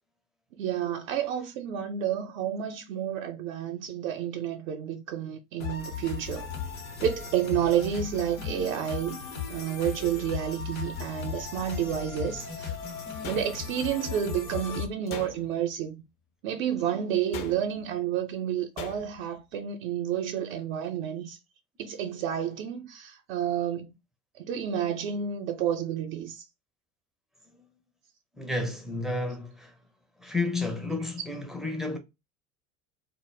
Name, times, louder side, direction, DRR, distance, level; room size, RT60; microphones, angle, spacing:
voice 1, 0.6-6.5 7.0-9.2 9.5-12.7 13.2-16.0 16.4-21.4 21.8-23.9 24.3-26.4, right 9 dB, 70° right, 0.5 m, -30 dB
sound 1, 5.6-14.9, left 6 dB, 90° left, 0.8 m, -36 dB
sound 2, 13.2-14.0 15.1-15.7 17.3-17.9 18.8-19.3, left 7 dB, 50° left, 0.5 m, -41 dB
voice 2, 28.4-29.7 30.2-32.0, left 2 dB, ahead, 0.4 m, -31 dB
2.1 x 2.0 x 3.1 m
hypercardioid pair, 70°, 42 cm